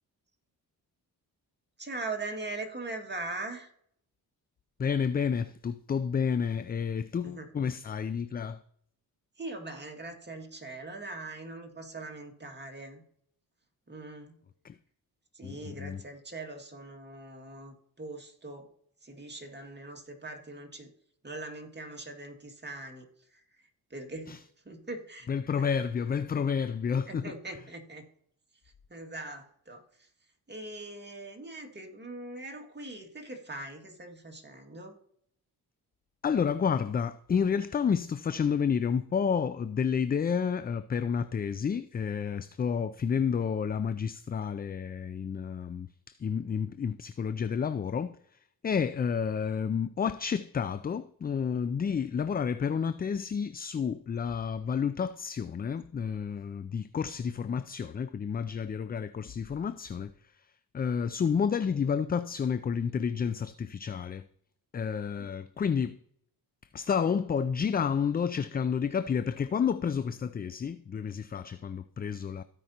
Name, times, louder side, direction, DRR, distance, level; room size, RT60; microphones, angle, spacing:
voice 1, 1.8-3.7 7.2-7.5 9.4-13.0 13.9-14.4 15.3-18.7 19.0-20.9 21.2-24.4 24.6-25.3 25.6-25.7 27.1-28.1 28.9-30.1 30.5-35.0 65.2-65.3, right 2 dB, 25° right, 2.1 m, -41 dB
voice 2, 4.8-8.6 14.6-14.8 15.4-16.0 24.3-24.4 25.3-27.3 36.2-48.2 48.6-60.1 60.7-64.3 64.7-66.0 66.7-72.4, left 6 dB, 25° left, 0.3 m, -30 dB
16.0 x 5.4 x 2.9 m
cardioid pair, 70°, 40 cm